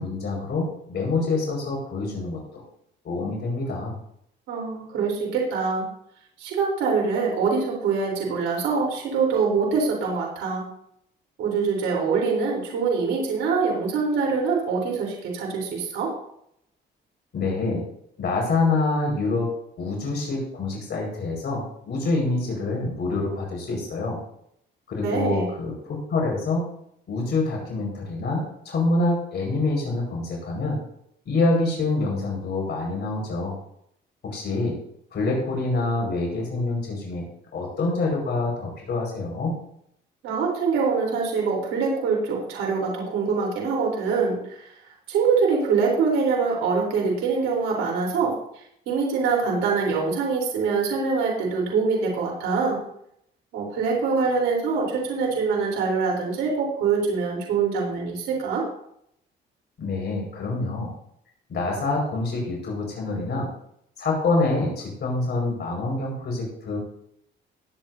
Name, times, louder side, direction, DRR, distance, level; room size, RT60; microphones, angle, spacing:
voice 1, 0.0-2.6 3.0-3.9 17.3-17.8 18.2-19.5 19.8-24.2 24.9-26.7 27.1-30.8 31.2-33.6 34.2-34.8 35.1-37.2 37.5-39.5 59.8-60.9 61.5-63.5 64.0-66.8, left 3 dB, 60° left, -1 dB, 4.9 m, -26 dB
voice 2, 4.5-5.9 6.4-10.6 11.4-16.1 25.0-25.5 40.2-44.6 45.1-48.3 48.9-52.8 53.5-58.6, right 5 dB, 90° right, -2 dB, 3.7 m, -24 dB
20.5 x 8.5 x 2.7 m, 0.72 s
cardioid pair, 90°, 20 cm